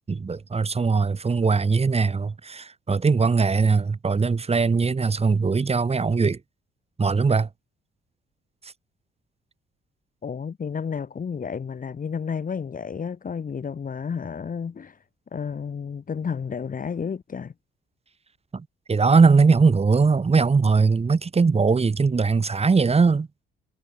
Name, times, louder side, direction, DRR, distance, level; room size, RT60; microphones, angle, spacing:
voice 1, 0.1-6.4 7.0-7.5 18.5-23.3, right 4 dB, 30° right, 4.1 m, -20 dB
voice 2, 10.2-15.0 15.3-17.5, left 6 dB, 45° left, 5.3 m, -31 dB
cardioid pair, 90°, 20 cm